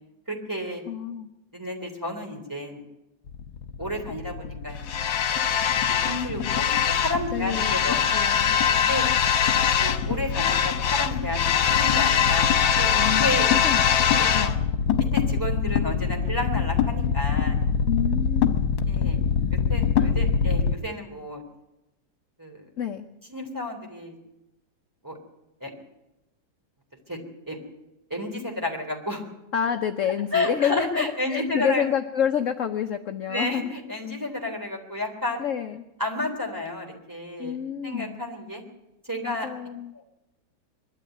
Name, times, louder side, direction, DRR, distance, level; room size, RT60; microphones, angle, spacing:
voice 1, 0.3-0.8 1.5-2.8 3.8-4.9 5.9-8.0 8.7-9.1 9.8-12.5 12.8-13.5 14.4-14.5 15.0-17.6 18.9-19.2 19.7-21.4 22.4-22.6 23.3-24.1 25.0-25.2 25.6-25.7 27.1-27.2 27.5-27.6 28.1-29.2 30.3-31.9 33.3-35.4 36.0-37.6 37.8-38.6 39.0-39.5 39.9-40.0, left 1 dB, 10° right, 2 dB, 3.5 m, -31 dB
voice 2, 0.9-1.3 7.3-7.7 8.1-8.6 13.0-13.8 14.1-14.6 17.9-18.7 20.0-20.1 22.8-23.1 29.5-33.7 35.4-35.8 37.4-38.2 39.2-40.0, left 8 dB, 55° left, 6 dB, 0.9 m, -28 dB
sound 1, 3.3-20.7, left 7 dB, 75° left, 1.9 m, -23 dB
22.5 x 12.5 x 9.2 m, 0.93 s
omnidirectional pair, 2.1 m